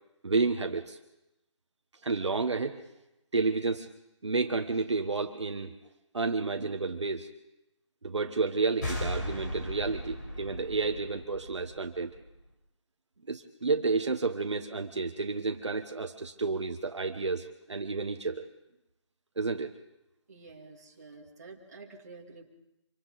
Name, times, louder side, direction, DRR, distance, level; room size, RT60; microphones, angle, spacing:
voice 1, 0.2-1.0 2.0-2.8 3.3-3.9 4.2-5.7 6.1-7.3 8.0-12.1 13.3-18.5 19.4-19.7, right 4 dB, 65° right, 5 dB, 1.4 m, -30 dB
sound 1, 8.8-12.3, left 1 dB, 40° left, 4.6 m, -37 dB
voice 2, 20.3-22.4, right 3 dB, 35° right, -1 dB, 2.6 m, -49 dB
26.5 x 25.5 x 4.2 m, 0.93 s
hypercardioid pair, 180°, 16 cm